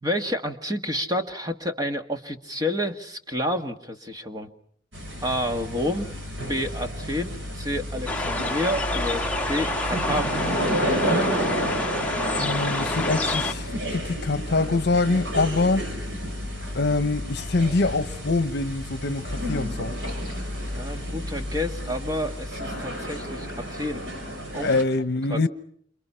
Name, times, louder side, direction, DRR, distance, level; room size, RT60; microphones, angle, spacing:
voice 1, 0.0-4.5 5.2-6.1 6.5-10.4 20.6-24.0 24.5-24.8 25.3-25.5, left 1 dB, 20° right, 1.8 m, -29 dB
sound 1, 4.9-24.8, equal, 80° right, 5.8 m, -31 dB
sound 2, 8.1-13.5, left 2 dB, 5° left, 1.7 m, -28 dB
voice 2, 12.4-15.8 16.7-19.9 24.6-25.5, left 3 dB, 60° left, 1.0 m, -24 dB
29.0 x 28.0 x 5.7 m
head